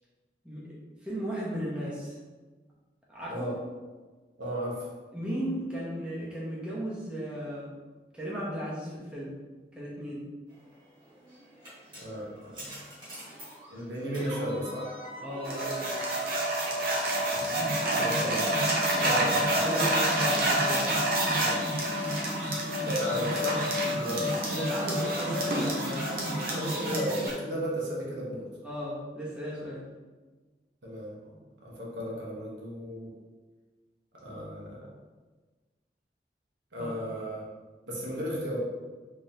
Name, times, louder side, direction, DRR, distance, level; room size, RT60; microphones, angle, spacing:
voice 1, 0.4-0.8 1.0-2.2 3.1-3.6 5.1-7.7 8.1-9.3 9.7-10.3 15.2-16.0 17.8-18.4 18.9-20.9 24.5-26.8 28.6-29.8 36.8-36.9, equal, 5° right, -7 dB, 0.8 m, -35 dB
voice 2, 3.3-3.6 4.4-4.9 9.6-9.7 12.0-12.9 13.7-15.0 18.0-18.4 19.0-19.6 21.3-21.6 22.8-24.4 26.5-28.5 30.8-33.1 34.2-34.9 36.7-37.4 37.9-38.6, equal, 90° right, -4 dB, 1.0 m, -35 dB
sound 1, 11.0-27.3, equal, 25° right, 1.3 m, -36 dB
sound 2, 15.4-27.3, right 1 dB, 55° right, 0.7 m, -29 dB
3.5 x 3.2 x 2.8 m, 1.3 s
head